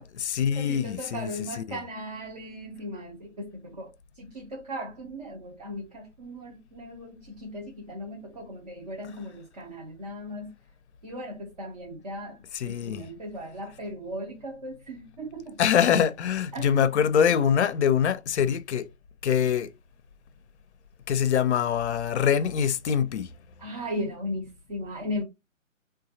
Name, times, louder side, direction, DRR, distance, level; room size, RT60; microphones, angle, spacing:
voice 1, 0.0-1.3 1.6-1.8 12.5-13.1 15.6-18.9 19.2-19.7 21.1-23.3, left 8 dB, 60° left, 0.5 m, -24 dB
voice 2, 0.6-3.9 4.2-10.5 11.0-12.4 12.7-15.6 16.5-16.9 23.6-25.2, equal, 30° right, 0.5 m, -37 dB
3.0 x 2.2 x 2.7 m
figure-of-eight pair, 145°, 40 cm